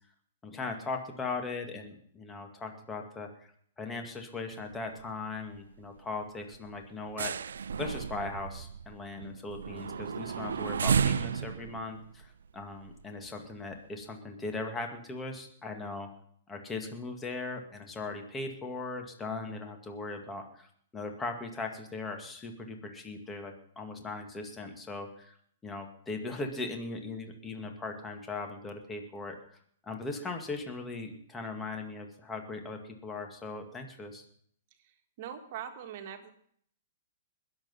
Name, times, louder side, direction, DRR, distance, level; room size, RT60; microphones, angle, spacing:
voice 1, 0.4-3.3 3.8-7.3 7.8-16.1 16.5-25.4 25.6-29.6 29.8-34.3, left 3 dB, 15° left, 4 dB, 2.2 m, -39 dB
sound 1, 4.6-5.1 5.4-5.6 6.0-6.2 6.5-13.2 13.7-13.8, right 7 dB, 80° right, 0.5 m, -33 dB
voice 2, 34.8-36.3, right 9 dB, 50° right, 6 dB, 1.9 m, -42 dB
21.0 x 7.9 x 5.7 m, 0.62 s
hypercardioid pair, 130°, 0 cm